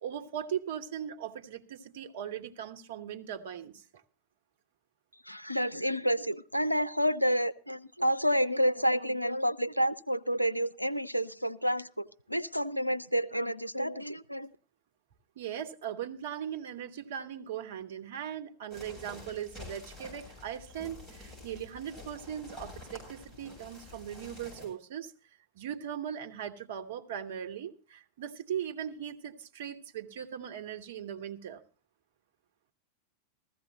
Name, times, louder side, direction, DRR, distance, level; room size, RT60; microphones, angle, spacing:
voice 1, 0.0-3.8 15.4-25.1 25.5-31.6, right 9 dB, 55° right, 1.1 m, -39 dB
voice 2, 5.3-14.5, equal, 90° left, 0.5 m, -29 dB
sound 1, 18.7-24.7, left 2 dB, 10° left, 7.7 m, -48 dB
15.5 x 14.5 x 2.9 m
figure-of-eight pair, 90°, 0 cm